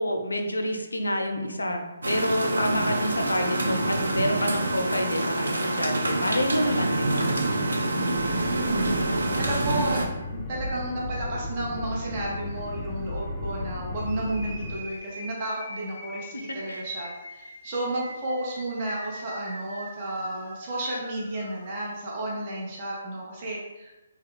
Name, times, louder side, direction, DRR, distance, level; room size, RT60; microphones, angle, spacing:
voice 1, 0.0-7.6 7.9-8.4 16.3-16.8, left 1 dB, 80° left, 5 dB, 0.5 m, -28 dB
sound 1, 2.0-10.0, right 2 dB, 75° right, 0.5 m, -26 dB
sound 2, 8.2-14.8, left 2 dB, 15° left, 0.5 m, -35 dB
voice 2, 8.5-9.0 9.4-23.9, right 1 dB, 40° right, -4 dB, 0.8 m, -32 dB
sound 3, 14.1-22.0, equal, 20° right, 1.1 m, -44 dB
3.3 x 2.2 x 3.6 m, 1.1 s
figure-of-eight pair, 140°, 0 cm